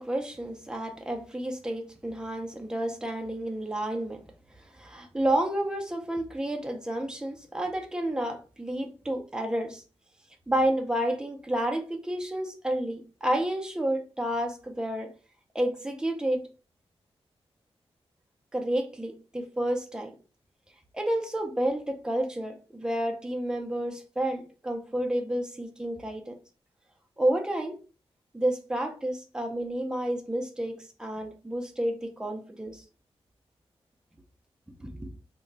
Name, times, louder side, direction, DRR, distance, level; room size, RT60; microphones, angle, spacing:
voice 1, 0.0-4.2 4.7-9.8 10.5-15.1 15.5-16.5 18.5-20.1 20.9-26.3 27.2-27.8 28.3-32.8 34.8-35.1, right 1 dB, 5° right, 3 dB, 0.5 m, -30 dB
2.2 x 2.2 x 3.8 m, 0.36 s
wide cardioid pair, 95°, 11 cm